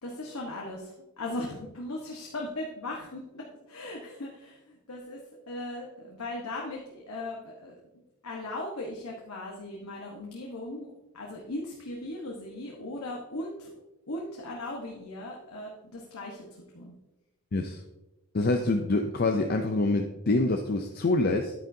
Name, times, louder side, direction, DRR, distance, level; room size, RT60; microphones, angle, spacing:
voice 1, 0.0-5.2 5.5-7.7 8.2-10.9 11.1-13.7 14.1-16.4 16.7-16.9, left 1 dB, 85° left, -1 dB, 1.3 m, -38 dB
voice 2, 18.3-21.5, left 2 dB, 45° left, 4 dB, 0.5 m, -26 dB
10.0 x 9.0 x 2.7 m, 1.0 s
head